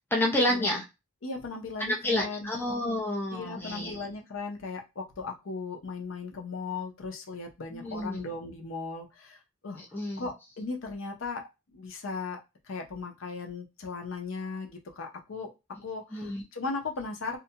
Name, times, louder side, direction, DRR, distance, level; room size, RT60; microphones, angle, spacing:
voice 1, 0.1-0.8 1.9-4.1 7.7-8.2 9.8-10.3 16.1-16.4, left 1 dB, 10° left, 0 dB, 0.5 m, -29 dB
voice 2, 1.2-2.5 3.3-9.4 9.6-9.8 10.2-11.4 11.7-12.4 12.7-15.5 15.8-17.4, left 4 dB, 80° left, 3 dB, 0.6 m, -37 dB
2.5 x 2.1 x 2.7 m, 0.25 s
head